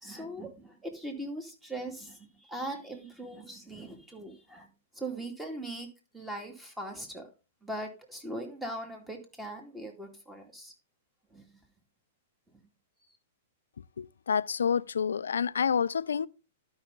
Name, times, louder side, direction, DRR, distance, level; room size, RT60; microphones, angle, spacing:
voice 1, 0.0-4.7 4.9-5.9 6.1-7.3 7.6-10.7 11.3-11.5, right 1 dB, 5° right, 2.3 m, -40 dB
voice 2, 14.0-16.3, left 7 dB, 80° left, 0.4 m, -28 dB
12.0 x 5.5 x 3.9 m
hypercardioid pair, 115°, 0 cm